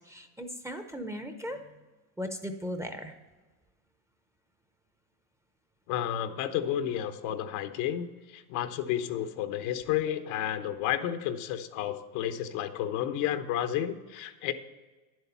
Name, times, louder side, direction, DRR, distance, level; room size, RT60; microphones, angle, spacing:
voice 1, 0.1-1.6 2.2-3.1, equal, 5° right, 6 dB, 0.7 m, -37 dB
voice 2, 5.9-14.5, left 11 dB, 70° left, 9 dB, 1.1 m, -31 dB
9.9 x 7.9 x 5.8 m, 1.2 s
supercardioid pair, 115°, 46 cm